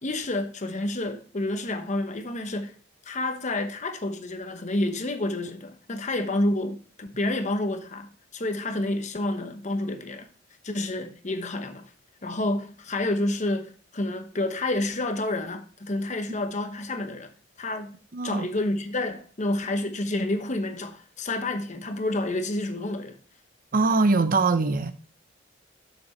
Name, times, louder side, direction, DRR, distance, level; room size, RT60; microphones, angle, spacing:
voice 1, 0.0-2.8 3.1-10.3 10.6-11.9 12.2-23.2, left 2 dB, 40° left, 1.0 m, -29 dB
voice 2, 18.1-18.5 23.7-24.9, right 3 dB, 45° right, 0.6 m, -22 dB
7.0 x 6.9 x 4.3 m
head